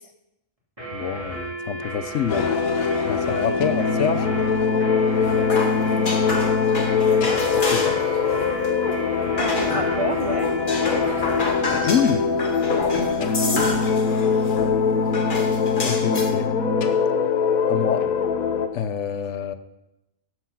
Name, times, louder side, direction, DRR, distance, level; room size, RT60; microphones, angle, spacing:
sound 1, 0.8-11.5, right 1 dB, 25° right, 3.3 m, -33 dB
voice 1, 0.9-2.5 3.1-4.3 7.4-7.9 11.8-12.2 15.8-16.5 17.7-18.0 18.7-19.6, left 7 dB, 65° left, 11 dB, 1.0 m, -26 dB
sound 2, 2.3-18.7, left 5 dB, 90° left, 1.3 m, -22 dB
sound 3, 5.1-8.2 8.4-10.1 10.4-14.8 15.1-16.3, left 3 dB, 40° left, 1.4 m, -29 dB
voice 2, 5.9-6.2 9.4-10.5 13.0-13.8, right 3 dB, 45° right, 6 dB, 0.4 m, -30 dB
13.5 x 6.4 x 5.8 m, 0.91 s
omnidirectional pair, 1.4 m